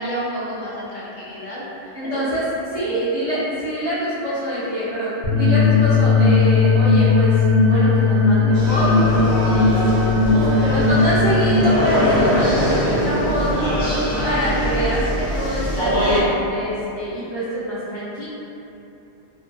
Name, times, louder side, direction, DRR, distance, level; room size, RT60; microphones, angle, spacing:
voice 1, 0.0-2.2 2.7-3.0 14.1-14.5, equal, 60° left, -7 dB, 0.7 m, -31 dB
voice 2, 1.9-2.4 2.7-18.2, right 1 dB, 45° right, -12 dB, 0.3 m, -25 dB
sound 1, 5.2-11.5, left 9 dB, 25° left, 0.6 m, -19 dB
sound 2, 5.4-11.8, equal, 60° right, 0.9 m, -20 dB
sound 3, 8.5-16.2, equal, 90° left, 1.1 m, -22 dB
2.6 x 2.3 x 2.4 m, 2.9 s
omnidirectional pair, 1.1 m